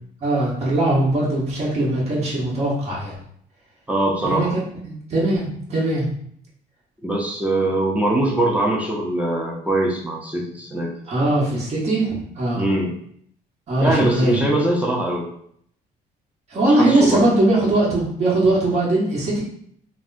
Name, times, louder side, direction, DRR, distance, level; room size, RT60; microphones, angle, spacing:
voice 1, 0.2-3.1 4.2-6.1 11.1-12.6 13.7-14.5 16.5-19.4, right 2 dB, 40° right, -6 dB, 1.1 m, -20 dB
voice 2, 3.9-4.5 7.0-10.9 12.5-12.9 13.8-15.3 16.7-17.2, right 1 dB, 10° right, -2 dB, 0.5 m, -22 dB
3.4 x 2.1 x 2.5 m, 0.66 s
cardioid pair, 110°, 17 cm